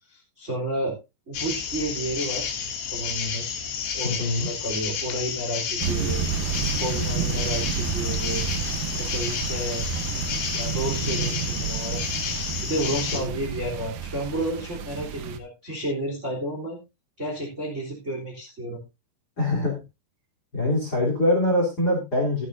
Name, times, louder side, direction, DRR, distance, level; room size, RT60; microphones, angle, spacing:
voice 1, 0.1-1.0 1.3-2.6 2.9-3.4 3.9-6.2 6.8-8.4 8.9-9.8 10.5-12.0 12.6-16.8 17.2-18.8, right 1 dB, 20° right, -1 dB, 2.9 m, -31 dB
sound 1, 1.3-13.2, left 7 dB, 75° left, 4.4 m, -31 dB
voice 2, 4.0-4.5 19.4-19.8 20.5-22.5, left 1 dB, 25° left, 0 dB, 3.3 m, -23 dB
sound 2, 5.8-15.4, right 7 dB, 90° right, 1.7 m, -30 dB
15.0 x 11.0 x 2.6 m, 0.24 s
omnidirectional pair, 5.2 m